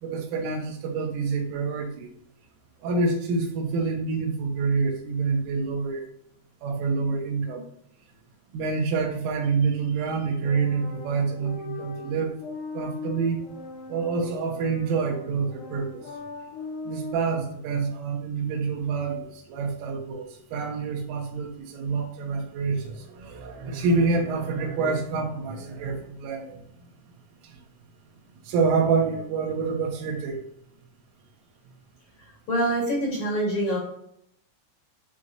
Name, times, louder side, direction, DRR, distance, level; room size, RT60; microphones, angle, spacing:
voice 1, 0.0-2.1 2.8-6.0 6.6-7.7 8.5-12.4 12.8-13.4 13.9-16.0 16.9-26.6 27.4-27.5 28.4-30.5, right 4 dB, 85° right, 2 dB, 3.8 m, -27 dB
sound 1, 10.4-17.1, left 3 dB, 70° left, 3.1 m, -39 dB
voice 2, 32.5-33.8, right 1 dB, 40° left, -4 dB, 3.7 m, -25 dB
11.5 x 4.3 x 2.5 m, 0.74 s
omnidirectional pair, 5.6 m